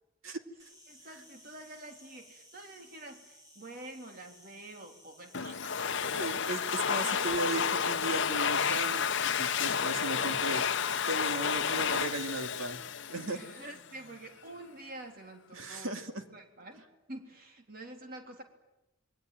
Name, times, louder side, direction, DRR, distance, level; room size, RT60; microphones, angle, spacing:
Insect, 0.6-5.7, equal, 15° right, 6.9 m, -58 dB
voice 1, 0.9-6.5 6.8-7.4 9.7-10.0 13.3-16.0 16.3-18.4, right 2 dB, 40° right, 4 dB, 3.6 m, -48 dB
Domestic sounds home sounds, 5.3-13.8, left 7 dB, 55° left, 0.9 m, -31 dB
voice 2, 6.2-10.6 11.1-12.8 13.1-13.4 15.5-16.2, right 2 dB, 70° right, 6 dB, 2.5 m, -36 dB
27.5 x 22.0 x 9.3 m, 0.96 s
head